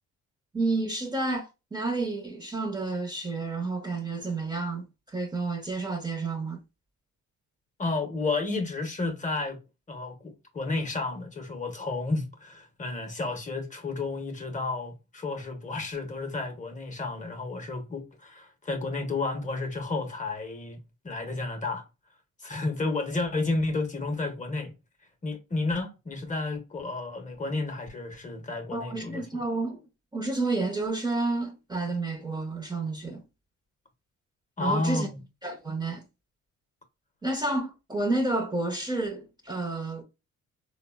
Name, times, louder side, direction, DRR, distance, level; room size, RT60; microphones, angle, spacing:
voice 1, 0.5-6.6 28.7-29.8 30.1-33.2 34.6-35.1 35.4-36.0 37.2-40.0, right 2 dB, 15° right, 0.6 m, -30 dB
voice 2, 7.8-9.6 9.9-21.8 22.4-24.7 25.2-29.2 34.6-35.2, left 3 dB, 25° left, 0.7 m, -31 dB
3.5 x 2.0 x 2.2 m
cardioid pair, 90°, 30 cm